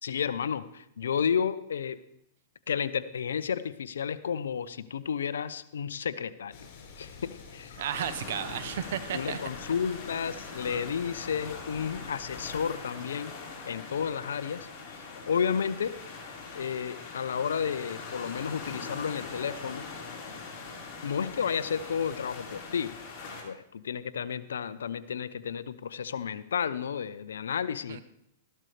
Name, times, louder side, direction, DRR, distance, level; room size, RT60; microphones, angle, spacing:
voice 1, 0.0-2.0 2.7-6.7 7.0-7.8 9.1-13.3 13.7-15.9 16.5-19.9 21.0-22.9 23.4-28.0, left 7 dB, 90° left, 14 dB, 0.6 m, -32 dB
sound 1, 6.5-12.6, left 4 dB, 55° left, 5.5 m, -49 dB
voice 2, 7.8-9.4 27.9-28.0, right 9 dB, 70° right, 12 dB, 0.9 m, -33 dB
sound 2, 7.9-23.4, left 4 dB, 30° left, 4.7 m, -42 dB
14.0 x 12.0 x 3.3 m, 0.75 s
hypercardioid pair, 135°, 0 cm